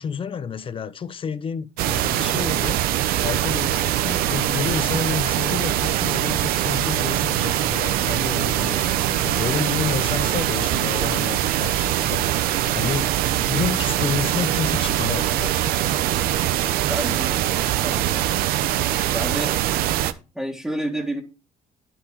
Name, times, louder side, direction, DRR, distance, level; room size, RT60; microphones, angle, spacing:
voice 1, 0.0-2.8 3.2-12.4 12.7-15.8, left 6 dB, 35° left, 0.8 m, -30 dB
sound 1, 1.8-20.1, right 13 dB, 90° right, 0.8 m, -23 dB
voice 2, 16.9-17.4 17.8-18.5 19.1-19.5 20.4-21.2, right 1 dB, 5° right, 1.9 m, -29 dB
10.0 x 6.1 x 4.7 m
cardioid pair, 115°, 15 cm